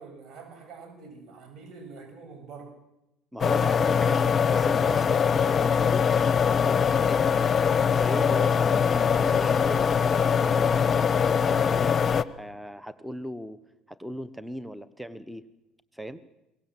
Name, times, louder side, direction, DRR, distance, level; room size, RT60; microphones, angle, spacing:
voice 1, 0.0-2.7, right 4 dB, 50° right, 5 dB, 7.4 m, -45 dB
voice 2, 3.3-6.0 6.6-7.7 7.9-10.8 11.4-11.9 12.3-13.6 13.9-15.4 15.9-16.2, equal, 5° right, 15 dB, 1.2 m, -38 dB
sound 1, 3.4-12.2, left 7 dB, 35° left, 0.9 m, -22 dB
22.5 x 18.5 x 7.8 m, 0.92 s
hypercardioid pair, 70°, 0 cm